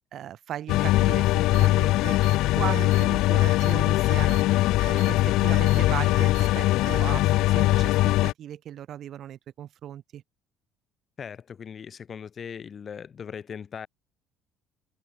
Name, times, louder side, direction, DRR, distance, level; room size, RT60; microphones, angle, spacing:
voice 1, 0.1-2.2 2.5-4.4 4.9-10.2, right 11 dB, 50° right, 4.2 m, -37 dB
sound 1, 0.7-8.3, left 17 dB, 70° left, 0.8 m, -21 dB
sound 2, 1.5-1.7 2.0-2.4 2.7-3.0 3.4-3.7 4.1-4.4 4.8-5.1 5.5-5.8 6.2-6.5 6.8-7.0, right 23 dB, 90° right, 5.2 m, -44 dB
voice 2, 11.2-13.9, left 7 dB, 35° left, 3.9 m, -39 dB
cardioid pair, 145°, 0 cm